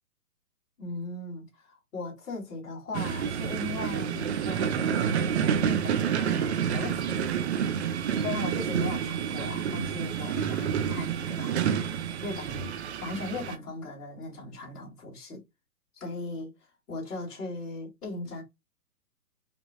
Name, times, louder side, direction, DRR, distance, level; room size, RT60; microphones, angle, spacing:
voice 1, 0.8-7.3 8.2-11.7 12.0-12.7 13.0-15.4 16.0-16.5 16.9-18.4, left 2 dB, 70° left, 2.7 m, -38 dB
sound 1, 2.9-13.6, right 8 dB, 45° right, 0.6 m, -29 dB
5.2 x 2.9 x 2.3 m
hypercardioid pair, 135°, 48 cm